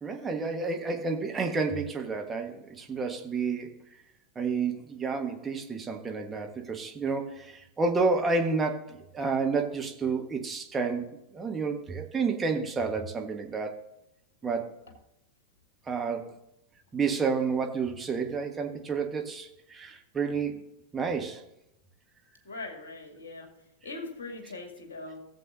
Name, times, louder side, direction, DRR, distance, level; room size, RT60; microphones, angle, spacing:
voice 1, 0.0-3.7 4.3-11.0 11.3-13.7 14.4-14.7 15.9-16.3 16.9-21.4, right 4 dB, 15° right, 3 dB, 1.3 m, -30 dB
voice 2, 22.4-23.5 23.8-25.2, left 3 dB, 60° left, 3 dB, 2.3 m, -41 dB
16.5 x 7.7 x 2.6 m, 0.83 s
figure-of-eight pair, 90°, 0 cm